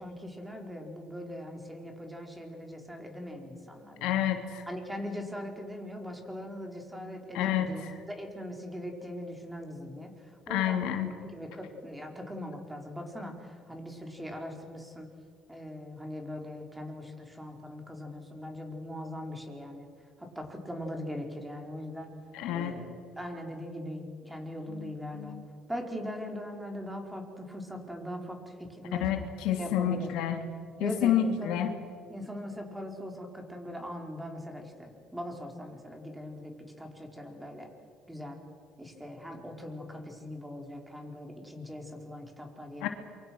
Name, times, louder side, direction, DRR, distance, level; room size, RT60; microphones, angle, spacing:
voice 1, 0.0-4.3 4.7-10.1 10.5-15.1 15.5-19.9 20.2-22.1 22.5-25.4 25.7-29.1 29.6-30.1 30.7-31.6 32.1-36.5 36.8-37.7 38.1-38.4 38.8-42.9, equal, 10° right, 2 dB, 5.3 m, -40 dB
voice 2, 4.0-4.6 7.3-7.7 10.5-11.1 22.3-22.7 24.7-25.4 29.0-30.4 30.8-31.7 42.8-42.9, left 10 dB, 80° left, 5 dB, 2.8 m, -29 dB
27.5 x 24.5 x 6.5 m, 2.1 s
cardioid pair, 100°, 0 cm